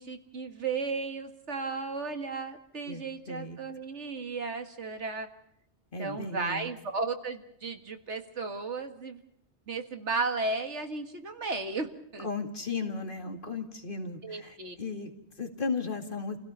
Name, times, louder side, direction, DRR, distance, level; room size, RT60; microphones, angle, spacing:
voice 1, 0.0-5.3 6.0-9.2 9.7-12.3 14.2-14.8, right 3 dB, 80° right, 6 dB, 2.1 m, -34 dB
voice 2, 2.9-3.6 5.9-6.7 12.2-16.4, left 4 dB, 50° left, 4 dB, 2.4 m, -36 dB
29.0 x 16.5 x 5.5 m, 0.76 s
omnidirectional pair, 1.2 m